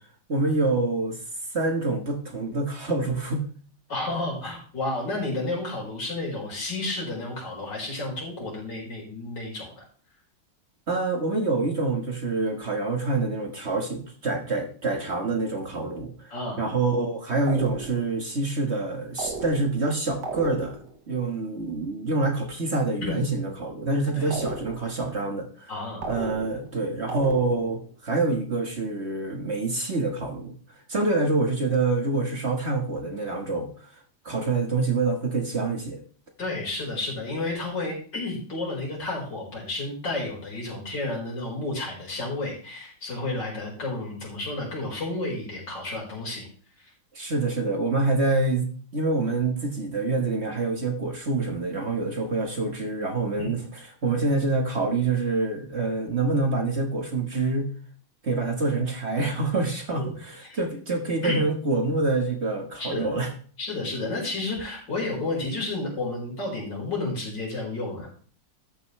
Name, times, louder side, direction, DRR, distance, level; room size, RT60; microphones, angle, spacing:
voice 1, 0.3-1.2 1.5-3.4 10.9-25.7 26.1-30.5 30.9-33.9 34.2-36.0 47.1-48.7 48.9-57.7 58.2-63.3, right 3 dB, 40° right, 3 dB, 1.6 m, -26 dB
voice 2, 3.9-9.8 16.3-16.7 23.0-23.2 24.1-24.3 25.7-26.1 36.4-46.5 46.8-46.9 53.4-53.6 59.9-60.1 60.4-60.6 61.2-61.4 62.8-63.1 63.6-68.1, left 2 dB, 75° left, -3 dB, 5.2 m, -31 dB
sound 1, 17.5-18.2 19.2-19.9 20.2-21.0 24.3-25.0 26.0-26.8 27.1-27.8, right 4 dB, 70° right, 2.2 m, -35 dB
13.0 x 9.4 x 3.2 m, 0.43 s
omnidirectional pair, 1.9 m